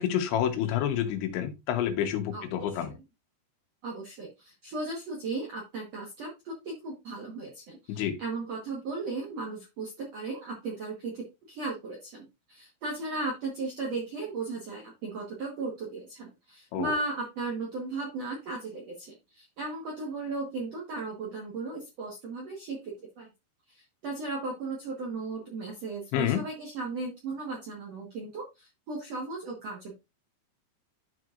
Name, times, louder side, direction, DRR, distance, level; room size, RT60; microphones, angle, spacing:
voice 1, 0.0-2.9 7.9-8.2 16.7-17.0 26.1-26.4, left 10 dB, 85° left, 3.4 m, -28 dB
voice 2, 3.8-23.3 23.7-29.9, right 3 dB, 70° right, 1.5 m, -36 dB
12.0 x 4.6 x 2.5 m
omnidirectional pair, 5.1 m